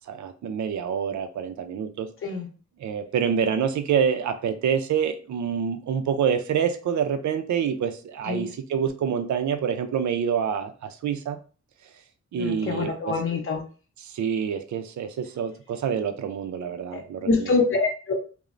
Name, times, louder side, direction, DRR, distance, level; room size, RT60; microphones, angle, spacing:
voice 1, 0.1-2.1 2.8-11.4 12.3-13.1 14.0-17.5, right 7 dB, 75° right, 7 dB, 0.4 m, -27 dB
voice 2, 12.4-13.6 16.9-18.1, left 4 dB, 45° left, 2 dB, 0.7 m, -25 dB
3.1 x 2.1 x 2.4 m, 0.38 s
wide cardioid pair, 145°, 29 cm